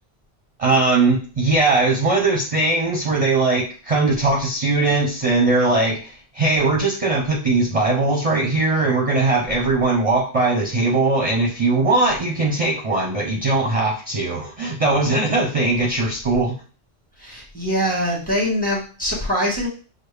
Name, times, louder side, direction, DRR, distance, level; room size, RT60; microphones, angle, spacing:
voice 1, 0.6-16.5, right 3 dB, 35° right, -2 dB, 0.8 m, -20 dB
voice 2, 17.2-19.7, equal, 10° left, -4 dB, 1.4 m, -23 dB
6.2 x 2.1 x 3.3 m, 0.37 s
omnidirectional pair, 1.1 m